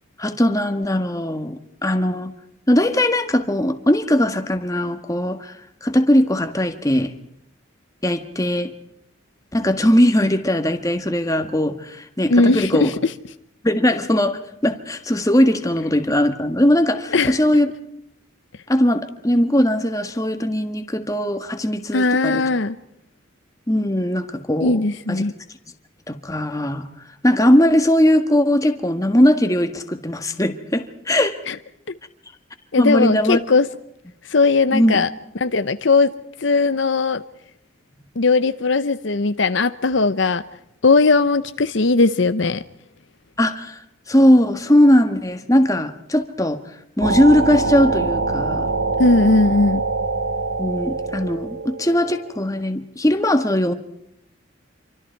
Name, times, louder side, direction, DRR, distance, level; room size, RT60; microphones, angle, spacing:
voice 1, 0.2-2.3 2.7-5.5 5.8-7.1 8.0-8.7 9.5-12.9 13.6-17.7 18.7-22.4 23.7-24.8 25.1-25.2 26.1-26.9 27.2-31.4 32.8-33.4 34.7-35.0 43.4-43.8 44.1-46.6 47.0-48.7 50.6-53.7, left 1 dB, 15° left, 7 dB, 1.6 m, -19 dB
voice 2, 12.3-13.1 17.1-17.5 21.9-22.8 24.6-25.3 31.5-31.6 32.7-33.7 34.3-35.1 35.4-36.1 36.4-37.2 38.2-40.4 40.8-42.6 49.0-49.8, left 3 dB, 65° left, 12 dB, 0.8 m, -18 dB
sound 1, 47.0-52.4, right 3 dB, 85° right, 1.9 m, -24 dB
27.5 x 24.5 x 4.6 m, 0.76 s
head